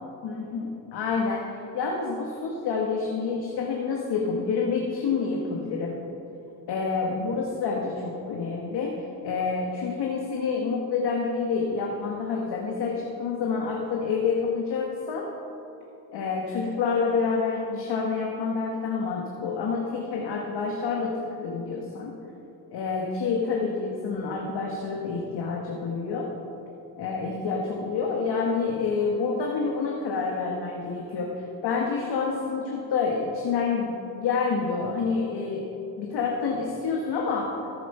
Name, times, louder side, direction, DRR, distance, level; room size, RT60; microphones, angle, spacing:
voice 1, 0.2-6.0 6.7-9.0 9.2-15.3 16.1-22.1 22.7-26.3 27.0-31.3 31.6-35.7 36.0-37.6, left 5 dB, 80° left, -1 dB, 1.5 m, -28 dB
14.5 x 9.6 x 5.5 m, 2.8 s
cardioid pair, 70°, 40 cm